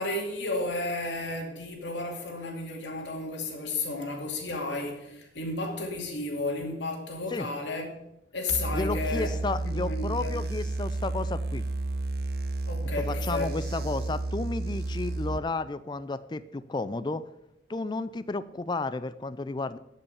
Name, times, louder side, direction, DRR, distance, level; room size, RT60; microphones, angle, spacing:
voice 1, 0.0-8.0 8.3-10.4 12.7-13.5, left 2 dB, 85° left, 2.5 m, -33 dB
sound 1, 8.5-15.4, right 2 dB, 60° right, 0.6 m, -31 dB
voice 2, 8.7-11.6 13.1-17.2 17.7-19.8, left 3 dB, 25° left, 0.4 m, -32 dB
11.5 x 5.5 x 7.0 m
head